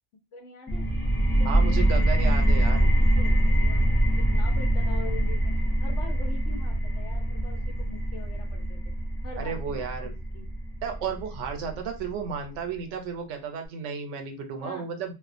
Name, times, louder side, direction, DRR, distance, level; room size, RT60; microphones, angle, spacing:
voice 1, 0.3-0.9 1.3-5.5 5.8-8.9 9.2-10.5 14.6-14.9, left 3 dB, 75° left, 3 dB, 1.0 m, -44 dB
sound 1, 0.7-12.1, right 1 dB, 20° left, 0.3 m, -24 dB
voice 2, 1.5-2.9 9.4-10.1 10.8-15.1, right 6 dB, 80° right, 5 dB, 0.9 m, -33 dB
2.4 x 2.1 x 2.4 m, 0.28 s
omnidirectional pair, 1.2 m